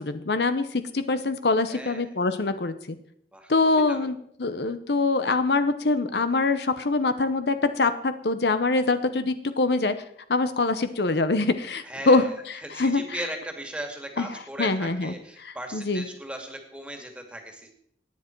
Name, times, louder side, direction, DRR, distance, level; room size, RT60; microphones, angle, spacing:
voice 1, 0.0-3.0 3.5-9.9 10.3-13.2 14.2-14.3 14.6-15.1 15.4-16.0, left 3 dB, 65° left, 11 dB, 0.8 m, -24 dB
voice 2, 1.7-2.1 3.3-4.1 11.8-17.7, right 1 dB, 5° right, 3 dB, 2.1 m, -38 dB
18.0 x 10.0 x 4.6 m, 0.69 s
head